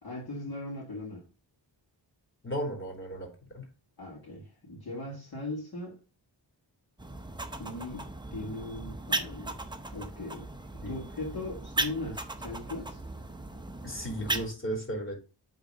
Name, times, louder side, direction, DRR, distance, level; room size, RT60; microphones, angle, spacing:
voice 1, 0.0-1.2 4.0-6.0 7.6-9.5 9.9-10.5 10.9-13.0, left 2 dB, 55° left, 2.5 m, -39 dB
voice 2, 2.4-3.3 3.5-3.6 10.8-10.9 13.8-15.1, equal, 25° left, 3.1 m, -34 dB
sound 1, 7.0-14.5, right 2 dB, 10° right, 0.7 m, -37 dB
8.8 x 4.0 x 3.9 m
wide cardioid pair, 145°, 45 cm